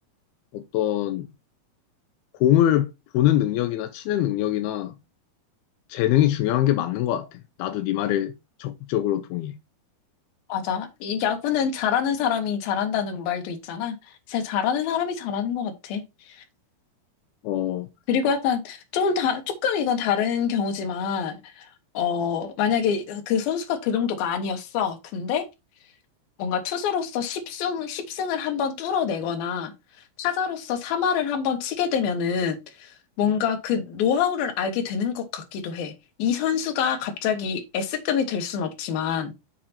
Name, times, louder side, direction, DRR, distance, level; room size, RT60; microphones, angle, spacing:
voice 1, 0.5-1.3 2.4-2.9 3.1-4.9 5.9-8.3 8.6-9.5 17.4-17.9, left 12 dB, 90° left, 2.6 m, -23 dB
voice 2, 10.5-14.0 14.3-16.4 18.1-21.7 21.9-25.5 26.4-29.7 30.2-35.9 36.2-39.3, left 7 dB, 75° left, 3.1 m, -26 dB
7.5 x 6.8 x 2.9 m
omnidirectional pair, 4.4 m